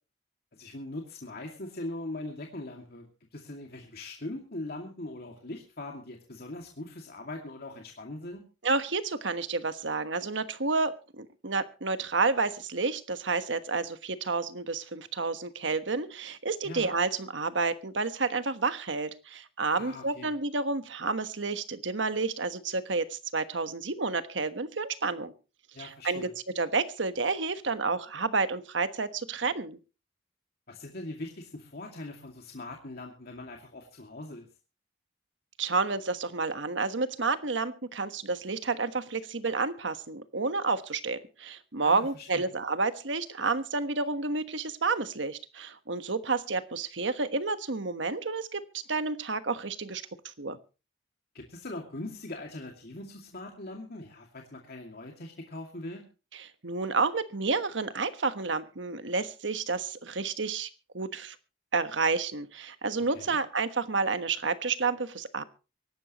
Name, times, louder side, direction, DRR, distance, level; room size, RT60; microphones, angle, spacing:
voice 1, 0.5-3.1 3.3-8.4 16.6-16.9 19.7-20.3 25.7-26.3 30.7-34.5 41.8-42.4 51.3-56.0 63.1-63.4, left 2 dB, 55° left, 1 dB, 2.4 m, -41 dB
voice 2, 8.6-25.3 25.8-26.3 26.5-29.8 35.6-50.0 50.4-50.6 56.3-61.3 61.7-65.4, right 4 dB, 70° right, 11 dB, 1.3 m, -30 dB
24.5 x 12.0 x 3.0 m, 0.33 s
head